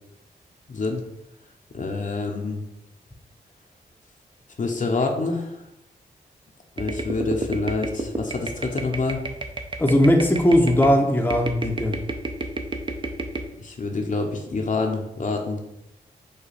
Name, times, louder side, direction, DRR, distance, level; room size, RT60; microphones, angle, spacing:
voice 1, 0.7-1.0 1.7-2.6 4.6-5.6 6.8-9.2 13.6-15.6, left 3 dB, 50° left, 2 dB, 0.8 m, -27 dB
sound 1, 6.8-10.9 11.3-13.4, right 2 dB, 30° right, 0.6 m, -30 dB
voice 2, 9.8-12.0, equal, 10° left, 2 dB, 0.7 m, -18 dB
4.9 x 2.2 x 4.3 m, 0.84 s
cardioid pair, 50°, 17 cm